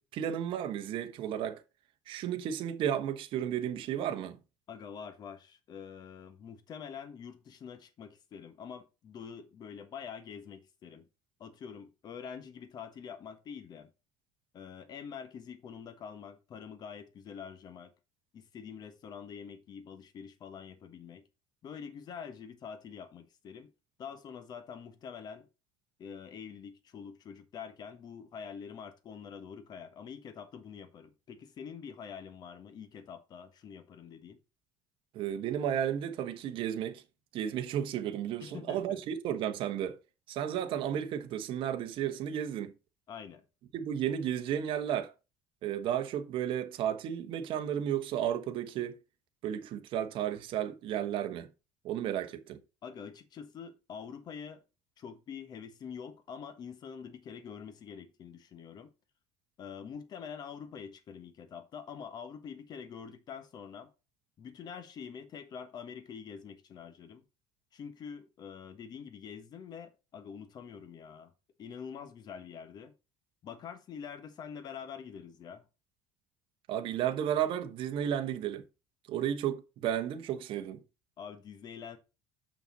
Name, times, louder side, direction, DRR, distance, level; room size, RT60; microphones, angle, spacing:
voice 1, 0.0-1.6 2.1-4.4 35.1-37.0 37.3-40.0 40.3-42.7 43.7-45.1 45.6-49.0 49.4-51.5 51.8-52.6 76.7-78.6 79.1-80.8, right 10 dB, 55° right, 1.2 m, -33 dB
voice 2, 4.7-11.1 11.4-13.9 14.5-17.9 18.3-21.2 21.6-23.7 24.0-25.5 26.0-34.4 38.4-39.0 43.1-43.4 52.8-54.6 55.0-58.9 59.6-63.9 64.4-67.2 67.7-71.3 71.6-72.9 73.4-75.6 81.2-82.0, left 7 dB, 40° left, 1.3 m, -46 dB
6.8 x 6.0 x 4.1 m
cardioid pair, 125°, 11 cm